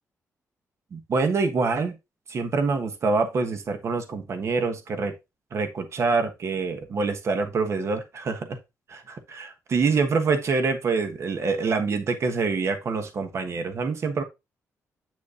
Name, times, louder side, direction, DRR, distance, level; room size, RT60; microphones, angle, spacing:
voice 1, 0.9-1.9 2.3-5.1 5.5-8.6 9.7-14.2, right 4 dB, 55° right, 1.3 m, -25 dB
8.3 x 6.3 x 2.6 m
cardioid pair, 120°, 6 cm